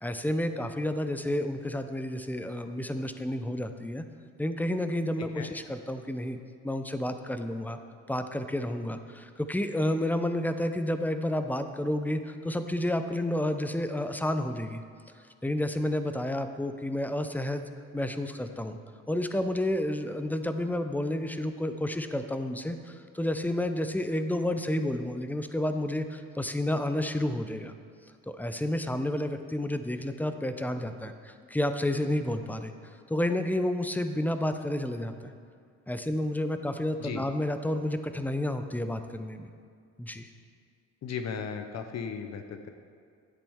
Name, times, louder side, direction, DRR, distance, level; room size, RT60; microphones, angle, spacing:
voice 1, 0.0-4.0 4.4-6.4 6.6-7.8 8.1-14.8 15.4-17.6 17.9-18.8 19.1-27.7 28.3-32.7 33.1-35.3 35.9-39.5 40.0-40.3, left 1 dB, 5° left, 8 dB, 0.5 m, -30 dB
voice 2, 5.2-5.5 37.0-37.2 41.0-42.7, left 6 dB, 60° left, 7 dB, 0.7 m, -36 dB
10.5 x 8.3 x 3.6 m, 2.2 s
cardioid pair, 90°, 30 cm